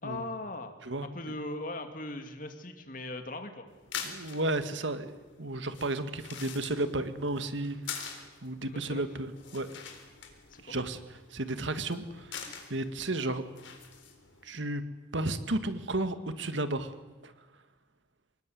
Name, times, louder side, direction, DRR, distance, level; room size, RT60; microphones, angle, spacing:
voice 1, 0.0-0.7 1.0-3.6 8.6-9.0 10.5-10.8, left 2 dB, 45° left, 7 dB, 2.4 m, -39 dB
sound 1, 3.7-14.5, left 7 dB, 80° left, 4.0 m, -46 dB
voice 2, 4.0-9.7 10.6-13.4 14.4-14.8 15.1-16.9 17.2-17.3, right 2 dB, 75° right, 10 dB, 1.8 m, -33 dB
25.0 x 20.0 x 9.5 m, 1.2 s
head